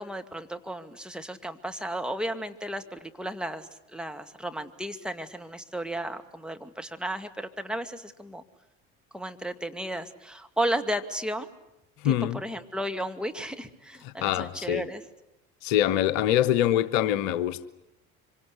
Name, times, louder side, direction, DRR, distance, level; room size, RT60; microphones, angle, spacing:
voice 1, 0.0-8.4 9.1-11.5 12.0-15.0, right 1 dB, ahead, 2.4 m, -34 dB
voice 2, 12.0-12.4 14.0-14.9 15.6-17.7, left 12 dB, 65° left, 1.2 m, -24 dB
26.0 x 25.0 x 8.5 m
hypercardioid pair, 65°, 41 cm